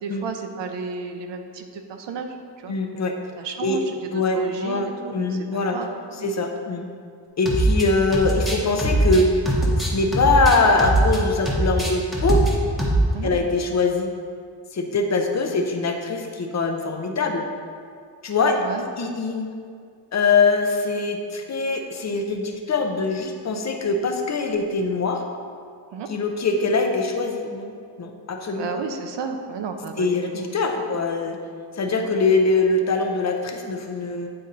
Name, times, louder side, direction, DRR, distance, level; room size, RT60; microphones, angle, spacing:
voice 1, 0.0-2.7 3.4-5.9 6.1-6.3 7.6-7.8 13.1-13.3 15.4-15.6 18.6-18.8 25.9-26.1 28.5-31.0 32.0-32.3, right 5 dB, 85° right, 5 dB, 0.7 m, -33 dB
voice 2, 2.7-3.1 3.6-3.8 4.1-5.8 6.2-6.9 7.4-9.3 9.9-12.4 13.2-14.1 14.7-17.5 18.2-18.6 19.0-19.5 20.1-25.2 26.1-27.7 28.0-28.8 30.0-31.4 31.7-34.3, left 3 dB, 40° left, 4 dB, 0.6 m, -22 dB
sound 1, 7.5-7.9 8.1-11.2 11.5-12.5 12.8-13.1, right 1 dB, ahead, 0.8 m, -21 dB
8.7 x 4.1 x 3.9 m, 2.2 s
wide cardioid pair, 155°, 42 cm